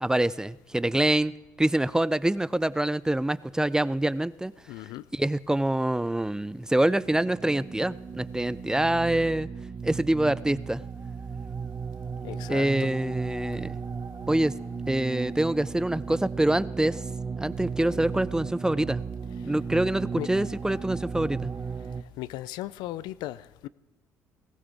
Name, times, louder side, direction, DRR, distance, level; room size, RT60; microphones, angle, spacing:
voice 1, 0.0-1.3 1.6-4.5 5.1-9.5 9.8-10.8 12.5-13.8 14.3-14.6 14.9-17.0 17.4-19.0 19.4-21.5, right 1 dB, 10° right, 0.4 m, -25 dB
voice 2, 4.7-5.0 12.2-12.9 20.2-20.3 22.2-23.7, left 15 dB, 80° left, 0.4 m, -36 dB
sound 1, 6.8-22.0, right 5 dB, 30° right, 0.8 m, -36 dB
18.5 x 16.0 x 3.5 m
supercardioid pair, 65°, 7 cm